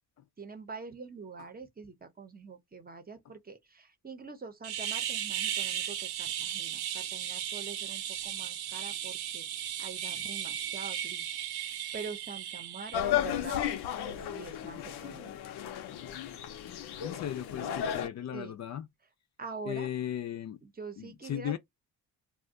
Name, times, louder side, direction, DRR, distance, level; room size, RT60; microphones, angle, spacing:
voice 1, 0.4-9.5 9.8-11.3 11.6-13.6 14.2-15.4 18.3-18.6 19.4-19.9 20.6-21.6, right 5 dB, 25° right, 0.7 m, -45 dB
Gas Grenade, 4.6-13.0, right 10 dB, 85° right, 0.7 m, -36 dB
sound 1, 12.9-18.1, left 10 dB, 90° left, 0.7 m, -34 dB
voice 2, 17.0-18.9 19.7-20.6 21.0-21.6, left 10 dB, 45° left, 0.4 m, -36 dB
2.4 x 2.2 x 3.6 m
cardioid pair, 110°, 38 cm